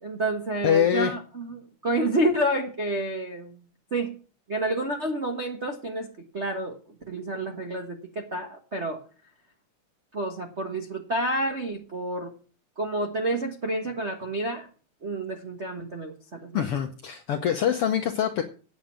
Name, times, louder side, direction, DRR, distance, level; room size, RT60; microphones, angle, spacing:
voice 1, 0.0-3.6 3.9-4.2 4.5-6.1 6.3-6.8 7.1-9.0 10.1-12.3 12.8-14.7 15.0-16.6, right 1 dB, 50° right, 0 dB, 0.8 m, -29 dB
voice 2, 0.6-1.1 16.5-18.4, left 9 dB, 70° left, 6 dB, 1.4 m, -24 dB
9.3 x 8.0 x 7.5 m, 0.38 s
omnidirectional pair, 3.6 m